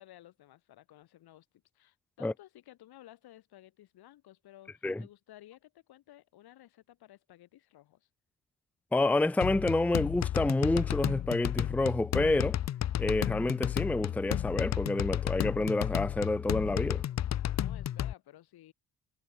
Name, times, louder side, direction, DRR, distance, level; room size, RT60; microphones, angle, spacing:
voice 1, 0.0-1.5 1.7-8.1 17.5-18.7, left 14 dB, 80° left, 5.5 m, -55 dB
voice 2, 8.9-12.6 13.0-17.0, left 2 dB, 5° left, 0.6 m, -28 dB
sound 1, 9.4-18.1, left 11 dB, 45° left, 0.7 m, -32 dB
cardioid pair, 90°, 37 cm